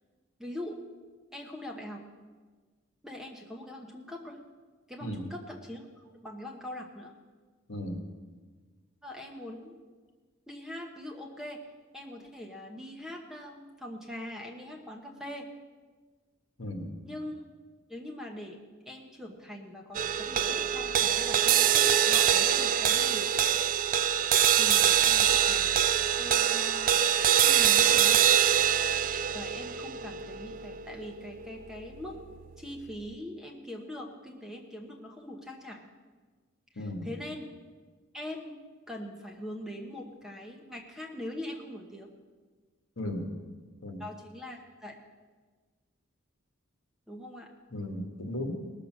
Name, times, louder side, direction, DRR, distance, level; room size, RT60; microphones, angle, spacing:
voice 1, 0.4-0.8 1.3-2.0 3.0-4.4 4.9-7.1 9.0-9.8 10.5-11.6 11.9-15.5 17.0-17.5 17.9-18.6 18.9-23.3 24.6-25.8 26.2-27.0 27.3-28.3 29.3-32.2 32.6-35.8 36.7-37.5 38.1-38.6 38.9-42.1 44.0-45.0 47.1-47.5, left 1 dB, ahead, 1 dB, 1.0 m, -42 dB
voice 2, 7.7-8.1 16.6-16.9 36.8-37.1 43.0-43.3 43.8-44.0 47.7-48.6, left 1 dB, 65° left, 4 dB, 1.8 m, -35 dB
sound 1, 19.9-32.4, right 9 dB, 40° right, 0.4 m, -24 dB
18.5 x 6.7 x 6.2 m, 1.4 s
head